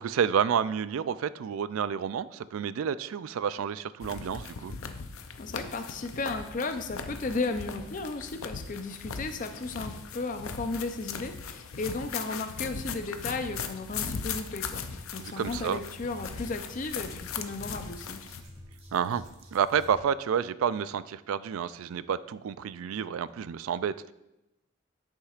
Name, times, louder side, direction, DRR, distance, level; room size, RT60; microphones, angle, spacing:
voice 1, 0.0-4.7 15.2-15.8 18.9-19.3 19.5-24.1, right 7 dB, 85° right, 16 dB, 0.3 m, -29 dB
sound 1, 4.0-18.4, left 6 dB, 85° left, 0.6 m, -39 dB
voice 2, 5.4-14.8 15.1-18.2, left 3 dB, 40° left, 7 dB, 0.5 m, -34 dB
sound 2, 7.8-9.0 9.9-11.3 11.9-13.0 14.9-20.0 23.1-23.5, equal, 30° right, 1.4 m, -52 dB
11.0 x 6.5 x 2.4 m, 0.93 s
head